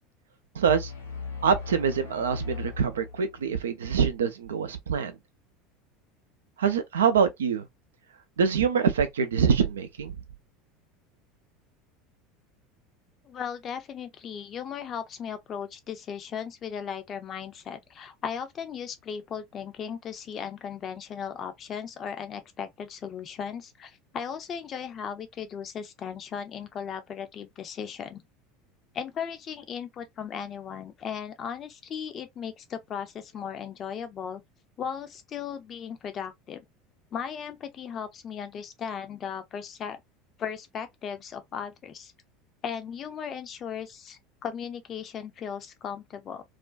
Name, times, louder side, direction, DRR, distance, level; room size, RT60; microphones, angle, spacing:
sound 1, 0.6-3.6, left 5 dB, 85° left, 0.8 m, -38 dB
voice 1, 0.6-0.9 1.4-5.1 6.6-7.7 8.4-10.2, right 7 dB, 75° right, 0.4 m, -25 dB
voice 2, 13.2-28.2 28.9-34.4 34.8-36.6 37.1-40.0 40.4-42.1 42.6-46.4, left 7 dB, 35° left, 0.5 m, -37 dB
2.4 x 2.2 x 2.3 m
figure-of-eight pair, 75°, 0 cm